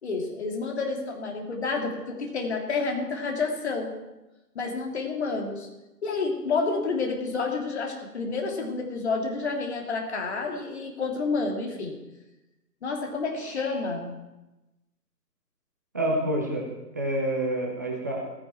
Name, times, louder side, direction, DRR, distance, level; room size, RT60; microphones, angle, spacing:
voice 1, 0.0-3.9 4.5-5.7 6.0-11.9 12.8-14.1, left 4 dB, 40° left, 1 dB, 3.1 m, -29 dB
voice 2, 15.9-16.7 16.9-18.2, right 1 dB, 10° right, -1 dB, 0.8 m, -28 dB
16.0 x 15.0 x 4.5 m, 1.0 s
figure-of-eight pair, 150°, 49 cm